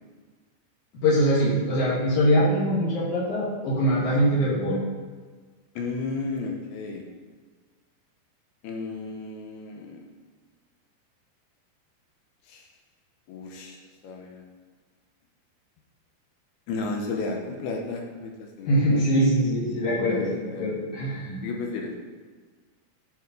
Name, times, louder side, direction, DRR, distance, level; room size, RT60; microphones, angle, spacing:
voice 1, 1.0-4.8 18.7-21.4, equal, 50° left, -6 dB, 3.2 m, -23 dB
voice 2, 5.8-7.0 8.6-10.0 12.5-12.7 13.3-13.8 14.0-14.4 16.7-19.0 20.0-20.8 21.4-21.9, left 3 dB, 75° left, 1 dB, 2.7 m, -33 dB
9.0 x 5.7 x 5.3 m, 1.4 s
omnidirectional pair, 4.9 m